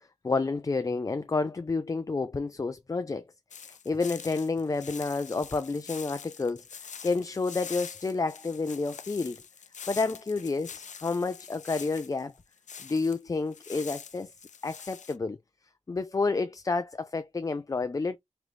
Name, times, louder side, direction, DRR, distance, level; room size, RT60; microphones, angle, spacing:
voice 1, 0.2-3.2 3.6-6.7 7.0-9.4 9.9-12.3 12.8-14.3 14.6-15.4 15.9-18.2, left 3 dB, 30° left, 0.4 m, -30 dB
sound 1, 3.5-13.2 13.5-15.2, left 7 dB, 80° left, 0.5 m, -45 dB
3.8 x 3.0 x 3.2 m
wide cardioid pair, 90°, 12 cm